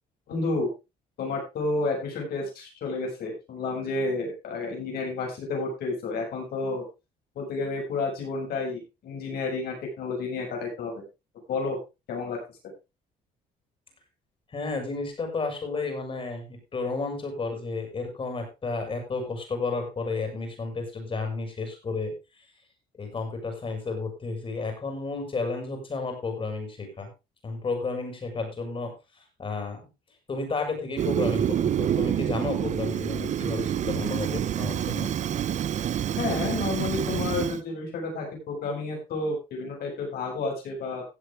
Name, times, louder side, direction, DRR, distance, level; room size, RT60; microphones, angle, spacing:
voice 1, 0.3-0.7 1.2-6.8 7.4-11.1 11.5-11.8 12.1-12.4 36.2-41.0, left 3 dB, 65° left, 0 dB, 7.1 m, -30 dB
voice 2, 14.5-22.1 23.0-27.1 27.4-28.9 29.4-29.8 30.3-35.1, left 3 dB, 30° left, 4 dB, 5.8 m, -32 dB
Fire, 31.0-37.6, right 10 dB, 45° right, 0.6 m, -27 dB
16.5 x 8.1 x 3.6 m, 0.26 s
cardioid pair, 110°, 17 cm